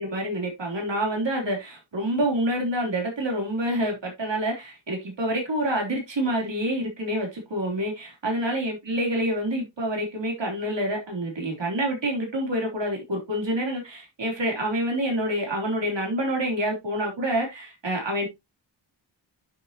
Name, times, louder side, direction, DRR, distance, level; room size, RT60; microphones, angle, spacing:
voice 1, 0.0-18.3, right 1 dB, 65° right, 3.6 m, -27 dB
9.2 x 6.8 x 3.0 m
wide cardioid pair, 75°, 46 cm